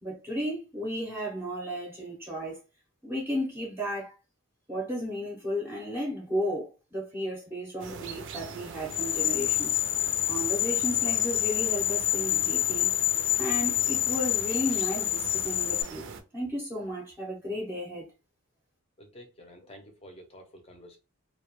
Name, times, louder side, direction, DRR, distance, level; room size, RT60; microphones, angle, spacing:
voice 1, 0.0-2.6 3.0-4.1 4.7-9.8 10.2-12.9 13.4-18.1, equal, 10° right, 0.6 m, -34 dB
sound 1, 7.8-16.2, right 5 dB, 55° right, 0.4 m, -42 dB
sound 2, 8.9-15.8, left 13 dB, 80° left, 0.4 m, -27 dB
voice 2, 19.0-21.0, equal, 25° left, 0.6 m, -50 dB
2.2 x 2.1 x 2.9 m
head